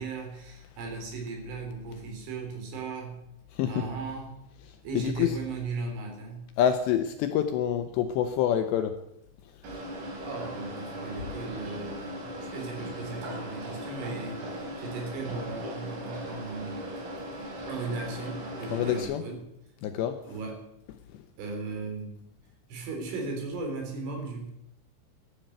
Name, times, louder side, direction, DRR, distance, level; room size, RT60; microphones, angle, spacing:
voice 1, 0.0-3.2 3.7-4.4 4.8-6.5 10.2-16.9 17.7-19.5 20.2-20.7 21.4-22.3 22.7-24.5, right 4 dB, 70° right, 6.1 m, -37 dB
voice 2, 3.5-3.9 5.0-5.4 6.6-9.0 9.7-9.8 18.7-19.2 19.8-20.2 21.1-21.2, left 9 dB, 75° left, 2.7 m, -27 dB
sound 1, 9.6-19.0, equal, 90° right, 6.6 m, -38 dB
14.5 x 12.0 x 8.0 m
omnidirectional pair, 5.8 m